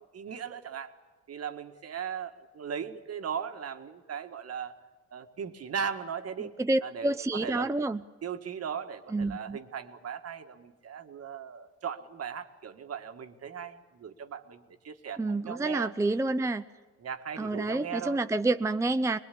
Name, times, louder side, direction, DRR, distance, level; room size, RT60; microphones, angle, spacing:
voice 1, 0.1-0.9 1.3-4.7 5.1-6.5 6.8-7.7 8.2-15.9 17.0-18.2, right 7 dB, 55° right, 7 dB, 1.9 m, -38 dB
voice 2, 6.4-8.0 9.1-9.6 15.2-16.6 17.4-19.2, right 2 dB, 10° right, 9 dB, 0.7 m, -28 dB
22.0 x 21.5 x 8.5 m, 1.3 s
cardioid pair, 90°, 30 cm